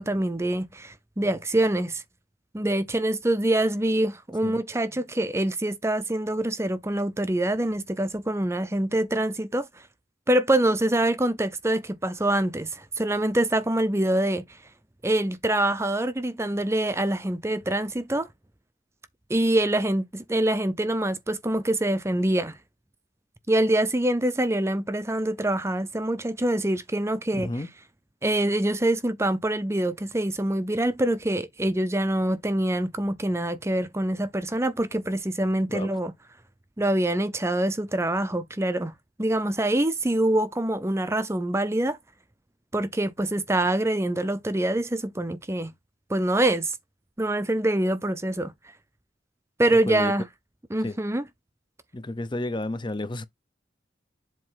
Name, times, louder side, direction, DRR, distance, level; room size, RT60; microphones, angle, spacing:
voice 1, 0.0-2.0 2.5-9.7 10.3-14.4 15.0-18.3 19.3-22.6 23.5-27.5 28.2-36.1 36.8-38.9 39.2-42.0 42.7-45.7 46.1-46.8 47.2-48.5 49.6-50.2 50.7-51.2, right 1 dB, 15° right, 0.6 m, -25 dB
voice 2, 27.3-27.7 35.7-35.9 49.7-50.1 50.8-51.0 51.9-53.3, left 2 dB, 25° left, 0.7 m, -31 dB
7.7 x 3.0 x 5.7 m
head